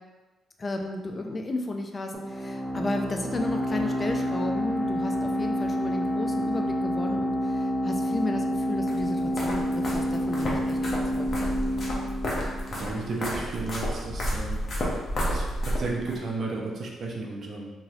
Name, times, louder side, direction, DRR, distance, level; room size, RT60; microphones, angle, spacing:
voice 1, 0.6-11.3, left 2 dB, 35° left, 3 dB, 0.4 m, -33 dB
sound 1, 2.1-13.5, equal, 10° right, 0.8 m, -29 dB
sound 2, 8.9-16.2, equal, 50° left, 0.8 m, -31 dB
voice 2, 12.7-14.6 15.3-17.7, right 3 dB, 55° right, -2 dB, 0.5 m, -33 dB
3.0 x 2.7 x 2.7 m, 1.2 s
cardioid pair, 75°, 0 cm